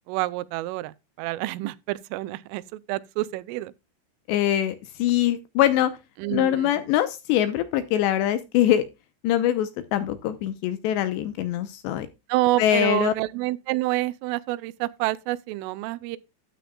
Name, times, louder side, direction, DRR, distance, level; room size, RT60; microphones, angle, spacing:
voice 1, 0.1-3.7 6.2-6.7 12.3-16.2, right 18 dB, 90° right, 3.2 m, -28 dB
voice 2, 4.3-5.9 6.3-8.9 9.2-12.1 12.6-13.1, left 12 dB, 80° left, 2.6 m, -23 dB
12.5 x 8.6 x 2.3 m
omnidirectional pair, 5.6 m